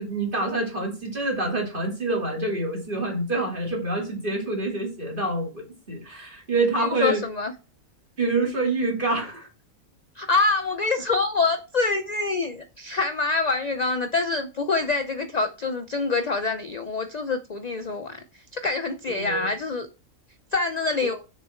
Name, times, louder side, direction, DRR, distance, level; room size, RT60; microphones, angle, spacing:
voice 1, 0.0-7.2 8.2-9.5 19.1-19.5 21.0-21.1, right 2 dB, 35° right, 2.8 m, -27 dB
voice 2, 6.8-7.5 10.2-18.2 18.5-19.9 20.5-21.1, left 3 dB, 50° left, 0.5 m, -25 dB
6.9 x 6.0 x 4.4 m
omnidirectional pair, 1.4 m